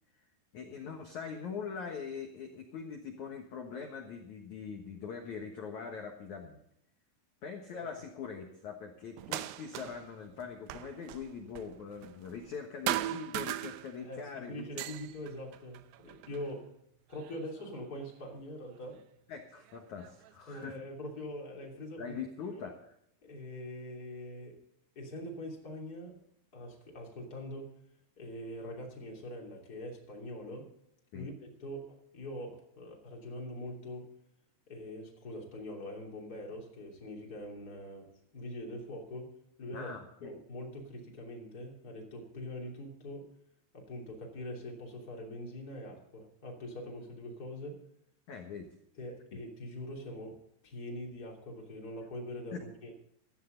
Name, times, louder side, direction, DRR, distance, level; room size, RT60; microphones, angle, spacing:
voice 1, 0.5-6.6 7.4-14.9 19.3-20.8 22.0-22.9 31.1-31.3 39.7-40.4 48.3-48.7 52.5-52.6, left 6 dB, 80° left, 3 dB, 1.7 m, -42 dB
sound 1, 9.2-10.1 10.4-12.6 12.9-14.2 14.6-16.5 17.1-18.0 19.0-19.1 19.7-20.7, right 14 dB, 90° right, 2.3 m, -39 dB
voice 2, 14.0-16.7 17.1-19.0 20.5-22.2 22.5-22.6 23.2-24.6 24.9-26.2 26.5-27.7 28.2-30.7 31.1-34.1 34.7-39.9 40.2-43.3 43.7-47.8 49.0-53.0, left 1 dB, 25° left, 0 dB, 2.4 m, -43 dB
15.5 x 14.0 x 3.9 m, 0.75 s
omnidirectional pair, 5.7 m